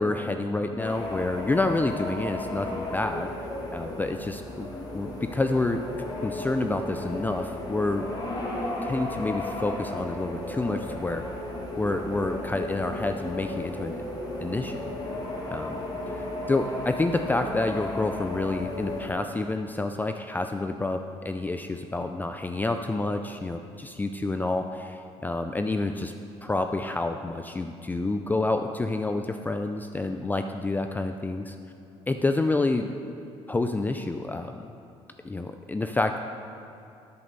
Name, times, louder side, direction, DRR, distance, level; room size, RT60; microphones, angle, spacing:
voice 1, 0.0-3.3 3.7-4.7 4.9-5.8 6.2-8.1 8.8-11.3 11.8-14.0 14.4-14.9 15.5-15.8 16.5-26.1 26.4-31.6 32.1-32.9 33.5-34.6 35.2-36.2, left 2 dB, 15° left, 6 dB, 0.4 m, -28 dB
sound 1, 0.8-19.1, left 1 dB, 35° left, 2.4 m, -34 dB
13.5 x 7.5 x 4.0 m, 2.7 s
supercardioid pair, 85°, 12 cm